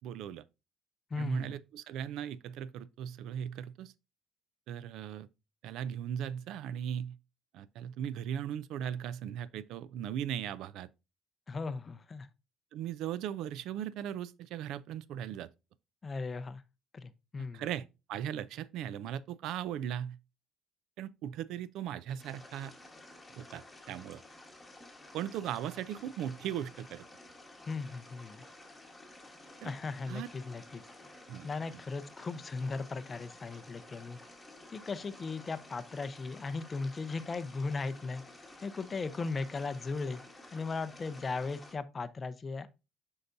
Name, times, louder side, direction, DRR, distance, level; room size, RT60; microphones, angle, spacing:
voice 1, 0.0-0.4 1.2-3.9 4.7-5.3 5.6-7.2 7.5-10.9 12.7-15.5 17.4-20.2 21.0-22.7 23.4-24.2 25.1-27.1 29.6-29.7 30.1-30.3 31.3-31.5, right 10 dB, 65° right, 0.4 m, -38 dB
voice 2, 1.1-1.6 11.5-12.3 16.0-16.6 16.9-17.6 27.7-28.4 29.6-30.8 31.4-34.2 34.7-38.2 38.6-40.2 40.5-42.7, left 4 dB, 20° left, 0.5 m, -37 dB
sound 1, 22.2-41.7, left 2 dB, 5° left, 1.3 m, -53 dB
8.0 x 5.5 x 2.6 m
cardioid pair, 165°, 0 cm